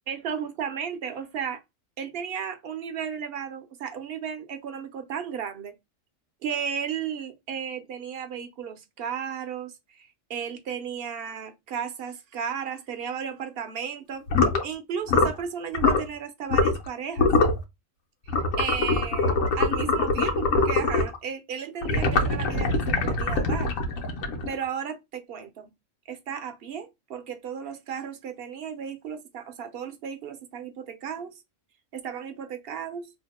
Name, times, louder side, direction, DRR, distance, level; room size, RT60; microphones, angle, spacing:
voice 1, 0.1-1.6 2.0-5.7 6.4-17.3 18.2-23.7 24.5-25.7 26.1-31.3 31.9-33.1, right 7 dB, 60° right, 0.7 m, -34 dB
sound 1, 14.3-14.6 15.1-15.4 15.7-16.0 16.5-16.9 17.2-17.6 18.3-21.2 21.8-24.6, left 3 dB, 80° left, 1.1 m, -23 dB
2.8 x 2.1 x 4.1 m
omnidirectional pair, 1.4 m